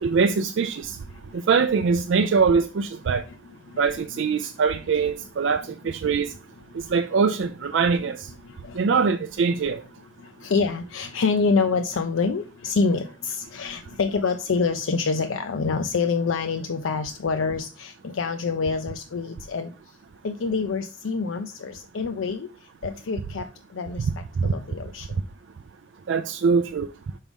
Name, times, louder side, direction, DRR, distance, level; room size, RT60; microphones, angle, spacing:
voice 1, 0.0-1.0 1.5-3.2 3.8-6.3 6.7-8.2 8.8-9.8 24.4-24.5 26.1-26.9, right 5 dB, 65° right, 0.4 m, -22 dB
voice 2, 8.5-8.8 10.2-19.7 20.2-22.5 22.8-24.1 24.4-25.1, left 4 dB, 80° left, 0.5 m, -26 dB
6.0 x 5.4 x 3.5 m
head